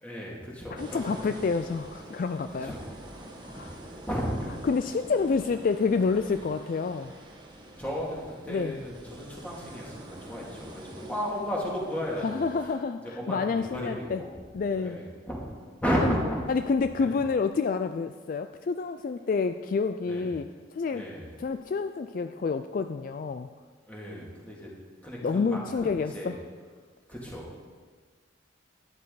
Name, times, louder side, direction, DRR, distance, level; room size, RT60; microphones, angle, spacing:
voice 1, 0.0-1.3 2.6-2.8 3.5-3.7 4.1-4.5 7.8-12.5 13.0-14.3 14.7-15.4 15.8-16.4 17.0-17.2 20.1-20.4 20.9-21.3 23.9-24.7 25.0-26.4 27.1-27.5, equal, 10° left, -5 dB, 2.4 m, -33 dB
voice 2, 0.7-2.7 3.4-3.8 4.6-7.1 8.5-8.7 12.2-14.2 14.5-15.0 16.0-16.2 16.5-20.5 20.8-21.0 21.4-23.5 25.2-26.4, left 4 dB, 45° left, 9 dB, 0.3 m, -28 dB
sound 1, 0.7-12.8, right 1 dB, 25° right, 1.3 m, -46 dB
12.0 x 10.5 x 4.0 m, 1.5 s
head